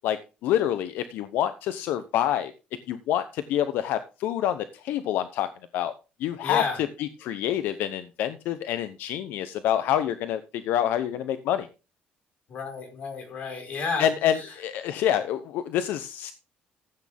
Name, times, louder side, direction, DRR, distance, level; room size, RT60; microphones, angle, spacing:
voice 1, 0.0-2.5 2.9-5.9 6.2-6.6 7.0-11.7 14.0-16.3, left 11 dB, 80° left, 11 dB, 0.9 m, -27 dB
voice 2, 6.4-6.8 12.5-14.5, left 4 dB, 45° left, 3 dB, 4.9 m, -32 dB
14.5 x 8.6 x 3.6 m, 0.31 s
cardioid pair, 175°, 3 cm